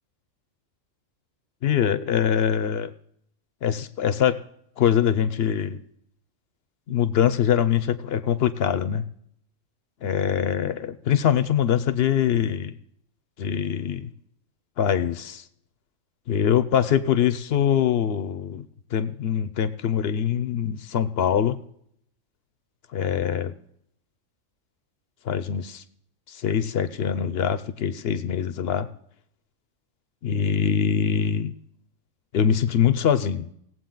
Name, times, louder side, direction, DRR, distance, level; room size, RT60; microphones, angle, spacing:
voice 1, 1.6-2.9 3.6-4.4 4.8-5.8 6.9-9.1 10.0-12.7 13.4-14.1 14.8-15.4 16.3-18.6 18.9-21.6 22.9-23.5 25.2-25.8 26.3-28.9 30.2-31.5 32.3-33.5, left 8 dB, 60° left, 13 dB, 0.7 m, -23 dB
18.5 x 7.8 x 3.9 m, 0.71 s
omnidirectional pair, 1.4 m